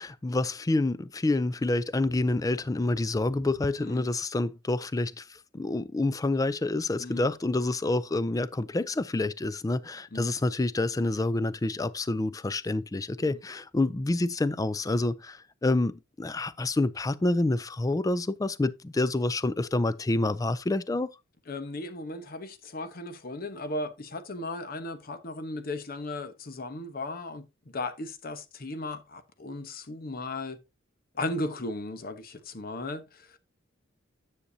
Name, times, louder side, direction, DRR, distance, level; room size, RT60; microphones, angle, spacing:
voice 1, 0.0-21.1, left 2 dB, 20° left, 0.4 m, -28 dB
voice 2, 3.8-4.1 7.0-7.3 10.1-10.3 13.2-13.4 21.5-27.4 27.7-30.6 31.1-33.6, left 2 dB, 50° left, 0.9 m, -36 dB
9.9 x 6.6 x 2.7 m
head